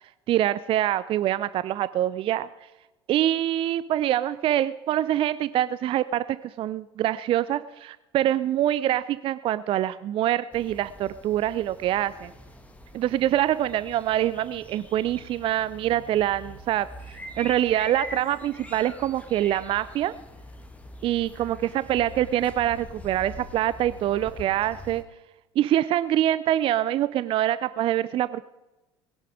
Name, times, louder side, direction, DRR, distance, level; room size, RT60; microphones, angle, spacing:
voice 1, 0.3-2.5 3.1-12.3 12.9-20.1 21.0-25.0 25.6-28.4, right 12 dB, 40° right, 16 dB, 0.5 m, -25 dB
sound 1, 10.5-25.0, left 1 dB, 10° left, 1.6 m, -44 dB
20.0 x 11.0 x 5.0 m, 1.0 s
figure-of-eight pair, 70°, 15 cm